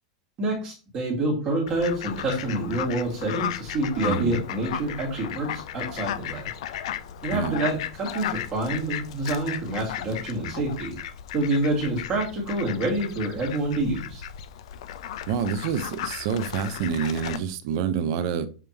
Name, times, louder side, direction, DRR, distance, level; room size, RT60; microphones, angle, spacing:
voice 1, 0.4-6.5 7.2-10.9 11.3-14.2, right 2 dB, 25° right, 2.0 m, -27 dB
Fowl, 1.7-17.4, left 10 dB, 60° left, 0.6 m, -35 dB
voice 2, 4.0-4.4 7.3-7.6 15.3-18.5, right 7 dB, 40° right, 0.7 m, -27 dB
7.3 x 3.5 x 4.6 m
supercardioid pair, 175°, 4 cm